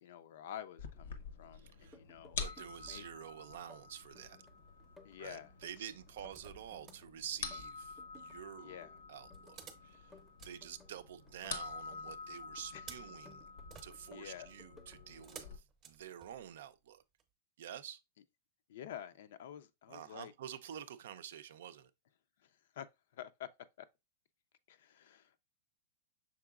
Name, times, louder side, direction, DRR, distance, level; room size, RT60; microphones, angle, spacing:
voice 1, 0.0-2.4 2.9-3.1 5.0-5.5 8.6-9.0 12.7-12.8 14.1-14.5 18.7-20.3 22.4-22.9 23.1-23.5 23.8-23.9 24.7-25.4, left 10 dB, 70° left, 0.4 m, -49 dB
sound 1, 0.8-15.6, left 5 dB, 85° left, 0.9 m, -48 dB
voice 2, 1.5-2.0 2.4-4.4 5.2-8.8 9.1-10.1 10.4-13.5 13.8-17.0 17.6-18.0 19.9-21.9, right 10 dB, 75° right, 0.4 m, -48 dB
sound 2, 1.7-3.3 3.5-4.5 4.8-7.1 7.3-8.4 8.6-9.7 9.9-12.3 12.6-13.7 13.9-15.0 15.3-15.6, left 2 dB, 5° left, 0.6 m, -61 dB
sound 3, 4.5-5.0 5.9-7.1 9.3-11.5 12.6-16.7 17.2-17.3, right 7 dB, 25° right, 0.7 m, -57 dB
5.9 x 3.8 x 2.3 m
supercardioid pair, 155°, 0 cm